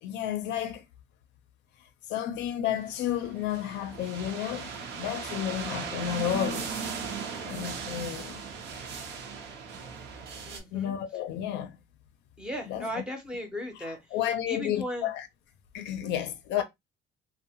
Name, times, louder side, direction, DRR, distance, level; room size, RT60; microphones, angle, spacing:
voice 1, 0.0-0.8 2.1-6.7 7.4-8.4 10.7-11.8 12.7-13.0 13.8-15.3 15.7-16.6, left 11 dB, 70° left, 0.5 m, -32 dB
sound 1, 2.7-10.6, right 5 dB, 65° right, 0.6 m, -38 dB
voice 2, 10.5-11.0 12.4-14.0 14.5-15.1 16.6-16.7, left 1 dB, 5° right, 0.5 m, -36 dB
2.6 x 2.1 x 2.7 m
cardioid pair, 180°, 19 cm